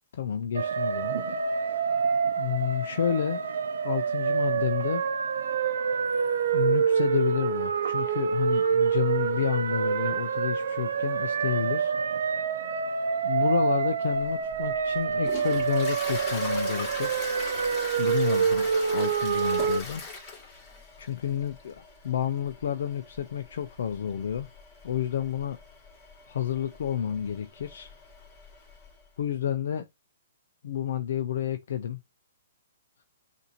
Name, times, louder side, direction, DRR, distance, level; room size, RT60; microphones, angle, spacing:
voice 1, 0.1-1.4 2.4-3.4 3.8-5.0 6.5-11.9 13.2-17.3 18.0-20.0 21.0-24.5 24.8-25.6 26.3-28.0 29.2-29.8 30.6-32.0, left 9 dB, 65° left, 0.5 m, -30 dB
sound 1, 0.5-19.8, right 6 dB, 75° right, 0.7 m, -27 dB
Toilet flush, 14.5-28.9, left 3 dB, 25° left, 2.4 m, -42 dB
6.6 x 2.7 x 2.9 m
hypercardioid pair, 150°, 0 cm